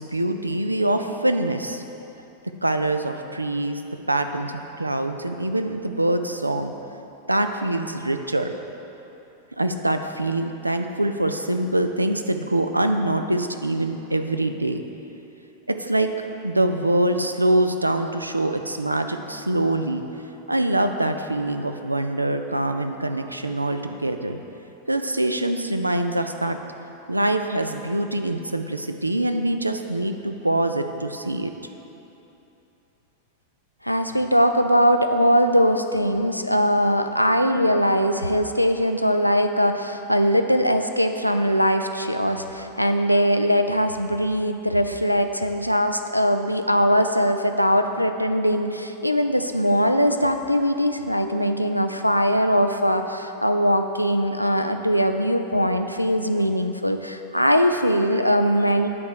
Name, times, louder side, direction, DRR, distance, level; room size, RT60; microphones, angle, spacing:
voice 1, 0.0-1.8 2.6-3.8 4.1-6.7 7.3-8.5 9.6-14.8 15.7-16.1 16.4-20.0 20.5-24.4 24.9-26.6 27.1-31.5, right 1 dB, 85° right, 7 dB, 0.4 m, -24 dB
voice 2, 33.8-58.9, equal, 90° left, 7 dB, 0.3 m, -21 dB
8.5 x 3.4 x 6.3 m, 3.0 s
figure-of-eight pair, 90°, 0 cm